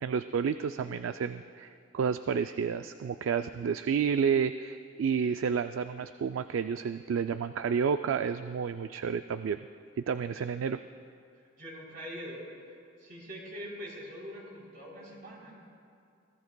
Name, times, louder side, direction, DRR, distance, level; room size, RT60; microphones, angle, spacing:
voice 1, 0.0-9.6 10.0-10.8, right 6 dB, 85° right, 10 dB, 0.3 m, -30 dB
voice 2, 11.6-12.5 13.0-15.6, equal, 50° right, -4 dB, 3.5 m, -43 dB
22.5 x 16.5 x 2.2 m, 2.4 s
head